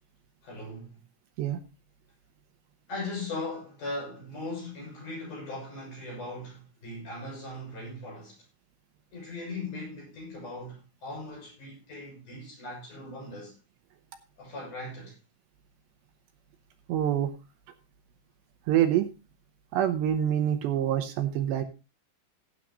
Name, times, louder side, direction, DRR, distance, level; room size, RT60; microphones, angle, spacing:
voice 1, 0.4-1.0 2.9-8.4 9.1-13.5 14.4-15.2, left 2 dB, 40° left, 8.1 m, -39 dB
voice 2, 16.9-17.3 18.7-19.1 19.7-21.6, right 10 dB, 75° right, 3.0 m, -26 dB
16.5 x 9.3 x 3.0 m
omnidirectional pair, 5.3 m